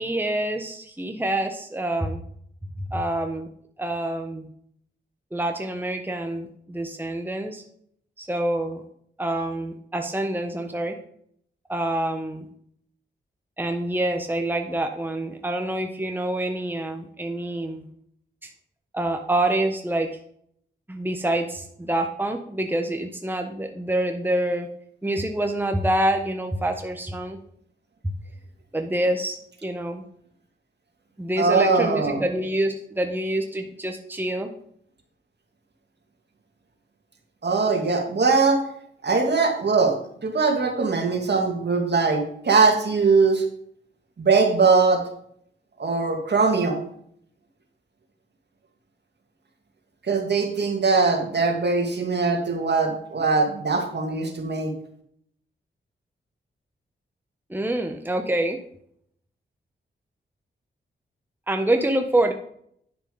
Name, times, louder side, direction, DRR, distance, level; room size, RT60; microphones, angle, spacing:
voice 1, 0.0-2.2 2.9-3.5 3.8-4.5 5.3-7.6 8.2-8.8 9.2-11.0 11.7-12.5 13.6-17.8 18.4-18.5 18.9-20.1 20.9-24.7 25.0-27.4 28.0-28.1 28.7-30.0 31.2-34.5 57.5-58.6 61.5-62.3, right 1 dB, 10° right, 5 dB, 1.2 m, -26 dB
voice 2, 31.4-32.2 37.4-38.6 39.0-40.0 40.2-43.4 44.2-45.0 45.8-46.8 50.0-54.7, right 4 dB, 55° right, 3 dB, 2.4 m, -21 dB
10.5 x 6.1 x 5.4 m, 0.66 s
cardioid pair, 55°, 20 cm